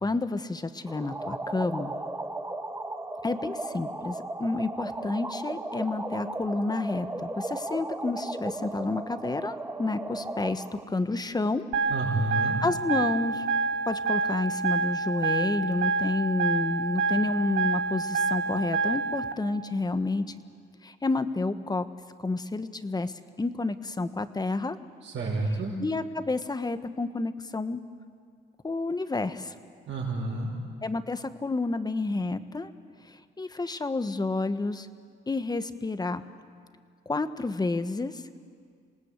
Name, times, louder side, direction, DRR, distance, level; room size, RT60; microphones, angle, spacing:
voice 1, 0.0-1.9 3.2-11.7 12.6-13.4 13.9-20.2 20.8-21.9 22.2-24.8 25.8-27.8 28.6-29.5 30.8-32.7 33.1-34.9 35.3-36.2 37.1-38.2, left 3 dB, 20° left, 11 dB, 1.2 m, -30 dB
sound 1, 0.9-10.8, right 2 dB, 10° right, 1.3 m, -36 dB
sound 2, 11.7-19.3, right 4 dB, 85° right, 1.1 m, -28 dB
voice 2, 11.9-12.6 25.0-25.7 29.9-30.5, right 2 dB, 70° right, -6 dB, 5.6 m, -29 dB
27.0 x 18.5 x 8.3 m, 2.1 s
cardioid pair, 90°, 20 cm